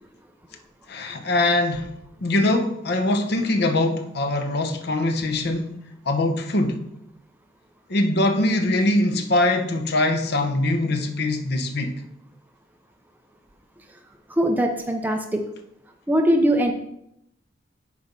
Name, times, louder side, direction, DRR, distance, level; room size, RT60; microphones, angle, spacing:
voice 1, 0.9-1.9 2.2-5.8 6.1-6.8 7.9-11.9, left 2 dB, 60° left, 0.8 m, -22 dB
voice 2, 14.3-15.4 16.1-16.7, equal, 10° right, 0.5 m, -21 dB
8.2 x 3.4 x 5.2 m
head